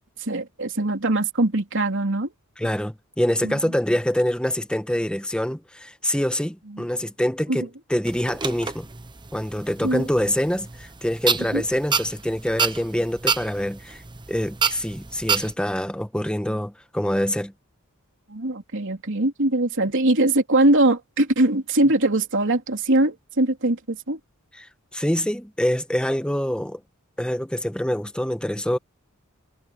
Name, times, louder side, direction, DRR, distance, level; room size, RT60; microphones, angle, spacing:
voice 1, 0.2-2.3 3.4-3.6 6.7-6.8 7.5-7.7 9.8-10.1 11.5-11.6 18.3-24.2, right 2 dB, 60° right, 3.4 m, -22 dB
voice 2, 2.6-8.9 9.3-14.0 14.3-17.5 24.6-24.7 24.9-26.8 27.2-28.8, equal, 5° left, 1.2 m, -25 dB
sound 1, 8.0-15.5, right 5 dB, 20° right, 1.0 m, -29 dB
head